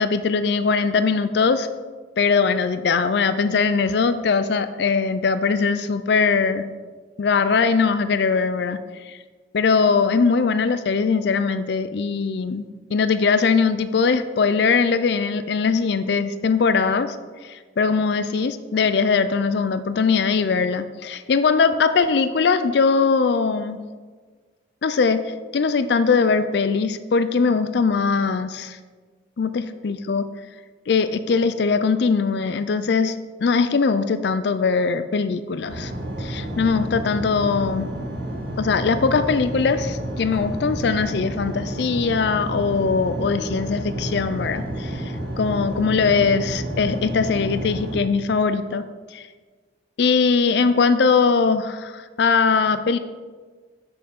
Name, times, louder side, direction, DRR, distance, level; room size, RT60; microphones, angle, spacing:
voice 1, 0.0-1.7 2.2-6.7 7.2-8.8 9.1-9.2 9.5-17.2 17.4-23.8 24.8-28.8 29.4-30.2 30.9-33.2 33.4-35.9 36.2-37.9 38.6-48.8 49.1-49.3 50.0-53.0, left 5 dB, 60° left, 12 dB, 0.4 m, -21 dB
sound 1, 35.7-48.0, right 1 dB, 60° right, 2.0 m, -30 dB
6.8 x 5.6 x 6.5 m, 1.4 s
head